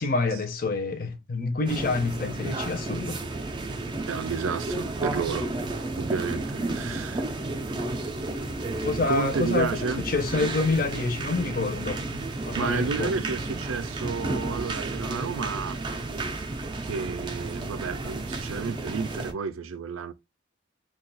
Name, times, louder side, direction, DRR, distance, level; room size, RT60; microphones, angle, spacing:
voice 1, 0.0-3.2 6.9-7.0 8.8-12.0 12.5-13.1, left 3 dB, 45° left, 0.5 m, -27 dB
sound 1, 1.7-19.3, right 2 dB, 25° right, 0.4 m, -32 dB
voice 2, 4.1-5.5 6.0-7.3 9.1-10.0 12.5-15.8 16.8-20.1, right 5 dB, 85° right, 0.4 m, -31 dB
2.5 x 2.3 x 3.9 m
head